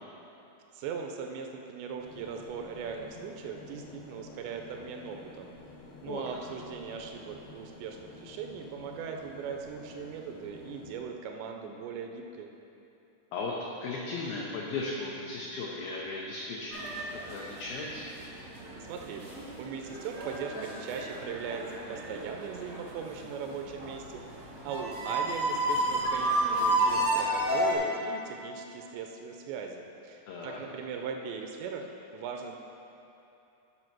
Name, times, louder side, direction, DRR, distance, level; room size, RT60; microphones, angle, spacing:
voice 1, 0.7-5.5 6.0-12.5 18.8-19.3 19.6-32.6, right 6 dB, 80° right, 3 dB, 2.6 m, -39 dB
sound 1, 2.0-11.0, left 3 dB, 70° left, 2.6 m, -50 dB
voice 2, 13.8-18.1 30.2-30.6, left 3 dB, 90° left, -3 dB, 2.0 m, -36 dB
sound 2, 16.7-27.7, right 1 dB, 55° right, 1.0 m, -32 dB
9.7 x 5.4 x 6.0 m, 2.9 s
omnidirectional pair, 5.2 m